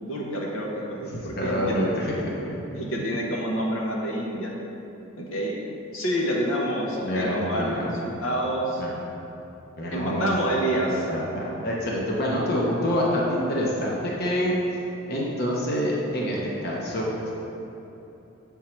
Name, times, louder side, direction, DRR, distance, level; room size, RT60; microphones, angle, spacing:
voice 1, 0.0-1.8 2.7-4.5 5.2-5.6 5.9-8.8 9.9-11.1, equal, 80° left, -2 dB, 0.9 m, -28 dB
voice 2, 1.4-2.6 7.0-7.9 8.8-9.0 9.8-10.4 10.9-14.6 15.1-17.3, equal, 50° left, -4 dB, 0.9 m, -27 dB
7.2 x 3.7 x 4.4 m, 3.0 s
head